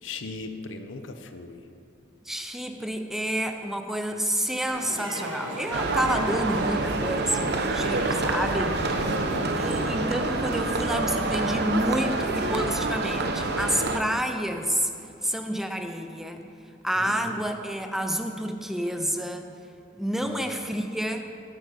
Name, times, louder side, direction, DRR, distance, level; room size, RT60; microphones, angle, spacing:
voice 1, 0.0-1.7 8.8-9.3 17.0-17.4 20.2-20.7, left 3 dB, 80° left, 8 dB, 0.8 m, -39 dB
voice 2, 2.3-8.8 9.6-14.9 15.2-16.4 16.8-19.5 20.0-21.2, equal, ahead, 5 dB, 0.5 m, -29 dB
sound 1, 4.7-10.1, right 1 dB, 75° right, 1.5 m, -36 dB
sound 2, 5.7-14.0, right 3 dB, 60° right, 0.8 m, -27 dB
sound 3, 8.6-15.2, equal, 40° left, 2.2 m, -44 dB
11.0 x 8.5 x 5.2 m, 2.7 s
head